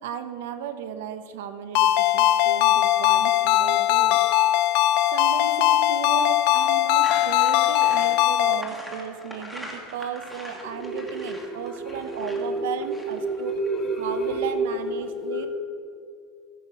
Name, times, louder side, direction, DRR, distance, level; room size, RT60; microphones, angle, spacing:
voice 1, 0.0-4.2 5.1-13.6 13.9-15.5, right 8 dB, 85° right, 8 dB, 0.8 m, -35 dB
Ringtone, 1.7-8.6, left 13 dB, 55° left, 0.4 m, -20 dB
sound 1, 7.0-13.7, left 1 dB, ahead, 1.3 m, -41 dB
voice 2, 10.6-15.5, right 2 dB, 20° left, 1 dB, 1.6 m, -29 dB
13.5 x 4.9 x 6.2 m, 2.2 s
supercardioid pair, 160°, 0 cm